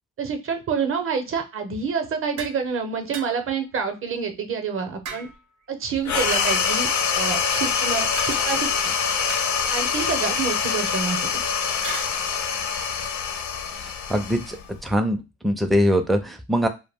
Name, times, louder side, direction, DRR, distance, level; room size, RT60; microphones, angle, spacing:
voice 1, 0.2-5.3 5.7-6.9 7.1-8.9 9.7-11.3, right 6 dB, 45° right, 6 dB, 0.7 m, -27 dB
sound 1, 2.4-2.6 3.1-3.6 5.0-5.6 6.3-6.8 8.2-8.8 9.3-10.0 11.8-12.2, right 5 dB, 85° right, 0.7 m, -38 dB
sound 2, 6.0-14.9, left 6 dB, 70° left, 0.6 m, -25 dB
voice 2, 14.1-15.2 15.4-16.7, equal, ahead, 6 dB, 0.4 m, -22 dB
2.2 x 2.1 x 3.4 m, 0.27 s
cardioid pair, 90°, 30 cm